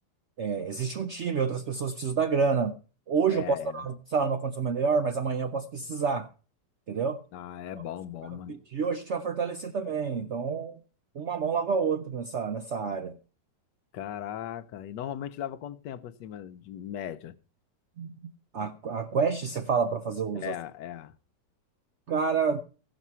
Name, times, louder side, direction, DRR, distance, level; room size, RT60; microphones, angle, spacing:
voice 1, 0.4-2.7 3.1-6.3 6.9-7.2 7.7-7.8 8.5-10.8 11.1-13.2 18.0-20.5 22.1-22.6, right 5 dB, 65° right, 0.7 m, -28 dB
voice 2, 3.3-3.9 7.3-8.6 13.9-17.3 20.3-21.1, left 10 dB, 75° left, 1.3 m, -38 dB
15.5 x 6.1 x 5.5 m
omnidirectional pair, 1.9 m